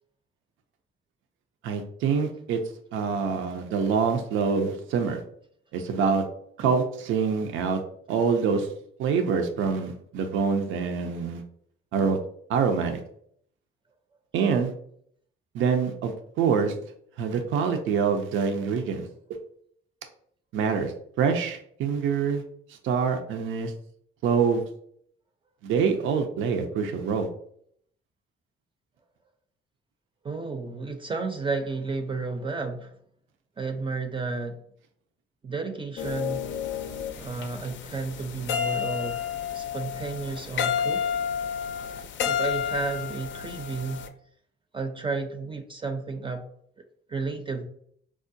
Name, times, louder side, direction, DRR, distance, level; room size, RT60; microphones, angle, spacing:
voice 1, 1.6-2.6 2.9-5.2 5.7-6.2 6.6-7.8 8.1-8.7 9.0-11.4 11.9-12.2 12.5-13.0 14.3-14.7 15.5-16.7 17.2-19.1 20.5-22.4 22.8-23.7 24.2-24.6 25.6-27.3, right 6 dB, 80° right, 6 dB, 0.5 m, -25 dB
voice 2, 30.2-32.9 33.6-34.6 35.4-36.5 37.2-39.2 39.5-41.0 42.2-44.1 44.7-46.4 47.1-47.7, right 3 dB, 25° right, 5 dB, 0.5 m, -32 dB
sound 1, 36.0-44.1, left 8 dB, 70° left, 0.4 m, -31 dB
4.6 x 2.1 x 2.6 m, 0.65 s
cardioid pair, 90°, 20 cm